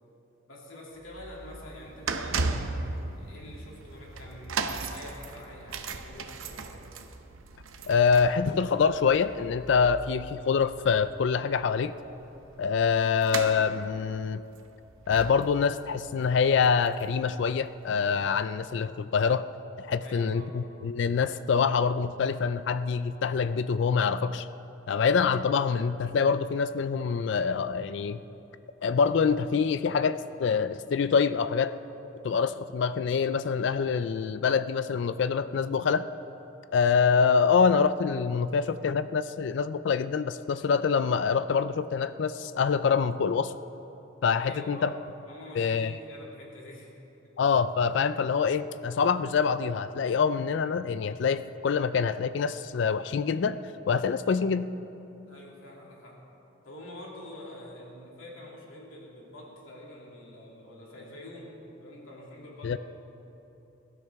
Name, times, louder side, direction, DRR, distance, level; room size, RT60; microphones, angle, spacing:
voice 1, 0.5-6.8 20.0-20.5 44.4-46.9 55.3-56.2 56.6-62.8, left 1 dB, 80° left, -3 dB, 2.6 m, -46 dB
sound 1, 1.0-17.3 17.6-17.8 18.6-18.7, right 4 dB, 90° right, 0.8 m, -38 dB
voice 2, 7.9-11.9 12.6-14.4 15.1-19.5 19.8-24.5 24.9-28.2 28.8-31.7 32.2-36.0 36.7-43.5 44.2-44.9 45.6-45.9 47.4-53.6 53.9-54.7 62.6-62.8, left 6 dB, 65° left, 13 dB, 0.3 m, -25 dB
22.0 x 12.5 x 3.5 m, 3.0 s
head